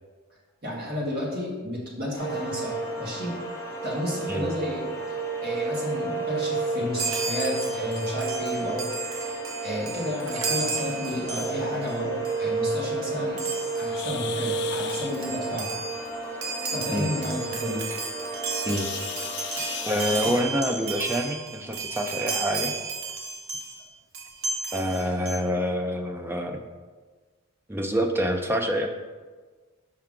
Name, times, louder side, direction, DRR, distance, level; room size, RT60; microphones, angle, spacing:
voice 1, 0.6-3.4 3.8-4.8 5.4-8.9 9.6-13.4 13.8-15.7 16.7-17.8, equal, 45° right, -5 dB, 1.9 m, -31 dB
sound 1, 2.2-20.4, right 3 dB, 15° left, 1.3 m, -32 dB
Chime, 7.0-11.9 12.2-12.5 13.4-14.0 14.5-14.6 14.8-23.8 24.1-25.4, right 4 dB, 75° right, 0.8 m, -34 dB
sound 2, 13.9-15.1 18.6-20.9 22.1-22.3 22.9-23.0 23.5-23.6 24.4-24.5 25.0-25.2, left 9 dB, 50° left, 0.4 m, -36 dB
voice 2, 19.9-22.8 24.7-26.6 27.7-28.9, equal, 10° right, 4 dB, 0.4 m, -26 dB
5.8 x 5.6 x 3.7 m, 1.4 s
head